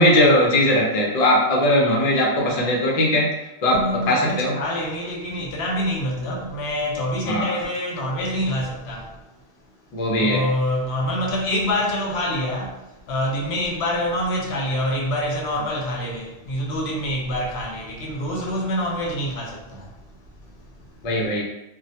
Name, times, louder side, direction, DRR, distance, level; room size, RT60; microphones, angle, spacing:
voice 1, 0.0-3.3 3.6-4.5 7.3-7.6 9.9-10.4 21.0-21.4, left 1 dB, 45° left, 0.5 m, -19 dB
voice 2, 3.7-9.2 10.2-19.9 20.4-20.5, left 1 dB, 70° left, 0.8 m, -26 dB
2.2 x 2.1 x 2.7 m
omnidirectional pair, 1.2 m